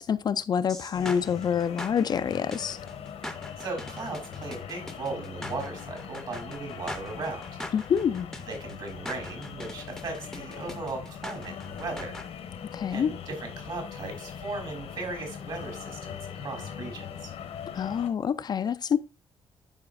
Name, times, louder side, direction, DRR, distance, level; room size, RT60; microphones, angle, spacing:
voice 1, 0.0-2.8 7.7-8.3 12.7-13.1 17.7-19.0, left 7 dB, 45° left, 0.3 m, -27 dB
sound 1, 0.7-12.3, left 1 dB, 5° left, 0.6 m, -42 dB
sound 2, 0.9-18.1, left 8 dB, 90° left, 1.1 m, -41 dB
voice 2, 3.6-7.5 8.5-12.1 12.9-17.3, right 3 dB, 50° right, 3.3 m, -37 dB
11.5 x 4.8 x 2.5 m
cardioid pair, 135°, 10 cm